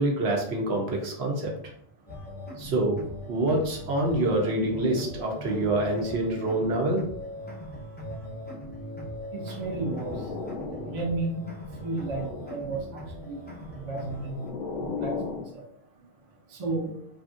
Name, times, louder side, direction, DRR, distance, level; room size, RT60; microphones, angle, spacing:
voice 1, 0.0-1.5 2.6-7.1, right 1 dB, 65° right, 0 dB, 0.9 m, -26 dB
sound 1, 2.1-14.5, equal, 10° left, 0.5 m, -40 dB
voice 2, 9.3-10.2 10.7-11.4 11.8-13.5 13.7-14.4 14.8-15.2 15.5-15.6 16.5-16.9, right 3 dB, 40° right, -1 dB, 0.6 m, -33 dB
sound 2, 9.4-11.2 11.6-12.8 13.7-15.5, left 4 dB, 55° left, 0.5 m, -37 dB
3.2 x 2.5 x 2.5 m, 0.66 s
omnidirectional pair, 1.2 m